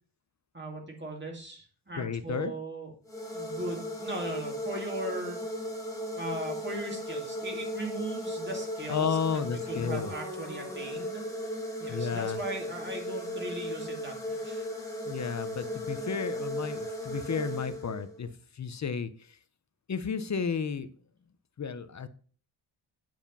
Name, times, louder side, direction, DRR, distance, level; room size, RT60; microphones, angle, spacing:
voice 1, 0.5-2.9 3.3-5.4 6.1-9.4 9.7-11.2 11.8-14.7, right 2 dB, 20° right, 1 dB, 2.4 m, -38 dB
voice 2, 1.9-2.5 8.9-10.1 11.9-12.4 15.1-18.3 18.5-19.1 19.9-20.9 21.6-22.1, left 6 dB, 35° left, 12 dB, 0.7 m, -32 dB
sound 1, 3.1-18.3, left 1 dB, 5° left, 1.7 m, -36 dB
9.0 x 4.9 x 5.4 m, 0.43 s
wide cardioid pair, 145°, 49 cm